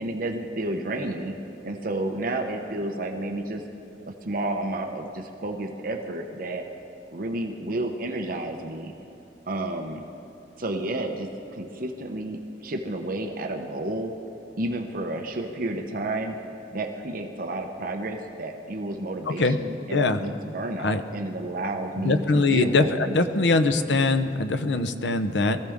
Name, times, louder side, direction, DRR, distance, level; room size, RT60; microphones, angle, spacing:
voice 1, 0.0-1.3 1.6-3.6 4.0-6.6 7.1-8.9 9.5-10.0 10.6-14.1 14.6-16.4 16.7-23.4, right 1 dB, 50° right, 3 dB, 0.9 m, -31 dB
voice 2, 19.3-19.6 19.9-20.2 20.8-21.0 22.0-25.6, left 3 dB, 75° left, 9 dB, 0.8 m, -22 dB
23.0 x 15.0 x 3.6 m, 2.8 s
head